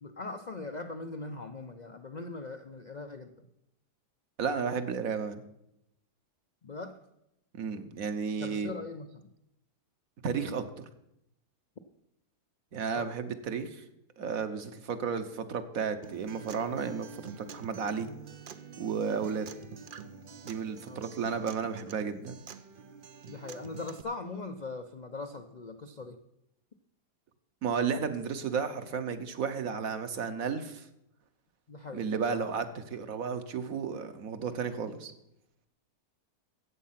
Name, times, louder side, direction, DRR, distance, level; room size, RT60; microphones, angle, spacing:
voice 1, 0.0-3.5 6.6-7.0 8.4-9.3 12.9-13.1 20.9-21.0 23.3-26.2 31.7-32.1 32.3-32.5, left 3 dB, 60° left, 7 dB, 0.4 m, -41 dB
voice 2, 4.4-5.4 7.6-8.7 10.2-10.9 12.7-13.8 14.2-17.1 17.4-18.1 18.8-19.5 20.4-22.4 27.6-30.8 31.9-35.1, right 6 dB, 60° right, 9 dB, 1.3 m, -33 dB
Acoustic guitar, 16.0-24.0, right 6 dB, 80° right, 0.4 m, -47 dB
14.0 x 8.5 x 5.8 m, 0.82 s
omnidirectional pair, 1.8 m